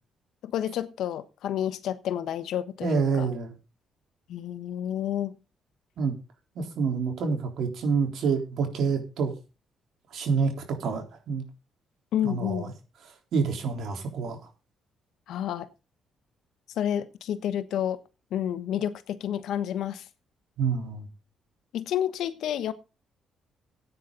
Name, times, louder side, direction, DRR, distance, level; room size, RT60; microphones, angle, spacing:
voice 1, 0.4-3.3 4.3-5.4 12.1-12.7 15.3-15.7 16.8-18.0 18.3-20.1 21.7-22.7, left 10 dB, 80° left, 1.1 m, -30 dB
voice 2, 2.8-3.5 6.0-6.1 6.6-9.3 10.1-11.5 12.2-12.7 13.3-14.4 20.6-21.1, right 5 dB, 70° right, 3.7 m, -27 dB
15.0 x 9.3 x 3.9 m
cardioid pair, 90°, 0 cm